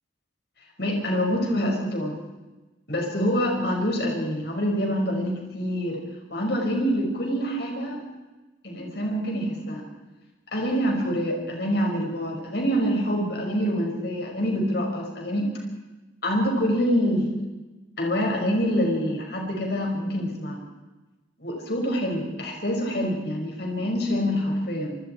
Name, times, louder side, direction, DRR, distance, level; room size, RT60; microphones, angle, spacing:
voice 1, 0.8-2.2 2.9-6.0 6.3-8.0 8.6-9.8 10.5-15.5 16.2-17.4 18.0-20.6 21.4-25.0, equal, 55° left, 1 dB, 5.8 m, -26 dB
28.0 x 20.5 x 4.6 m, 1.1 s
head